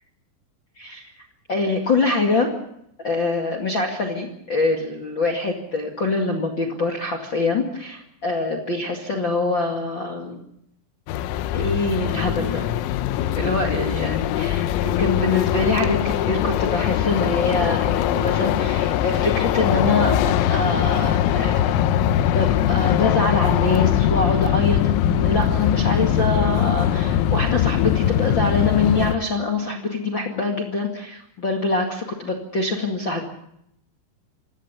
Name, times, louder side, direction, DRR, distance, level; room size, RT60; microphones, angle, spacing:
voice 1, 0.8-1.1 1.5-2.5 3.0-10.4 11.5-12.7 13.4-21.7 22.2-33.3, left 3 dB, 50° left, 1 dB, 1.4 m, -24 dB
sound 1, 11.1-29.2, left 11 dB, 85° left, 3.8 m, -21 dB
27.0 x 17.5 x 6.9 m, 0.75 s
omnidirectional pair, 5.9 m